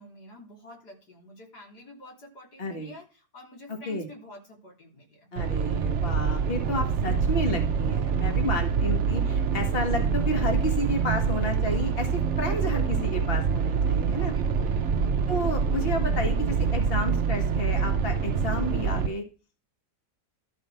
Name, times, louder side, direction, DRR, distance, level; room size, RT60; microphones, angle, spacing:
voice 1, 0.0-5.3 8.2-8.8 14.2-15.2, left 1 dB, 80° left, 0 dB, 4.1 m, -48 dB
voice 2, 2.6-2.9 3.9-4.1 5.3-14.3 15.3-19.3, left 1 dB, 35° left, 4 dB, 2.1 m, -31 dB
sound 1, 5.4-19.1, right 6 dB, 55° right, 0.9 m, -26 dB
12.5 x 5.6 x 6.5 m, 0.34 s
omnidirectional pair, 1.7 m